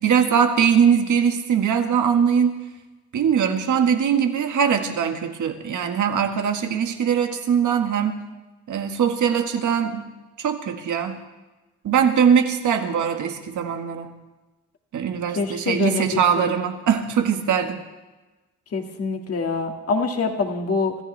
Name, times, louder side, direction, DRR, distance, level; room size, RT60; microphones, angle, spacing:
voice 1, 0.0-2.6 3.1-8.2 8.7-10.0 10.4-11.2 11.8-14.1 14.9-17.8, right 7 dB, 80° right, 5 dB, 1.7 m, -21 dB
voice 2, 15.4-16.1 16.4-16.5 18.7-21.0, left 4 dB, 50° left, 2 dB, 2.0 m, -25 dB
25.5 x 14.5 x 3.4 m, 1.1 s
cardioid pair, 95°, 30 cm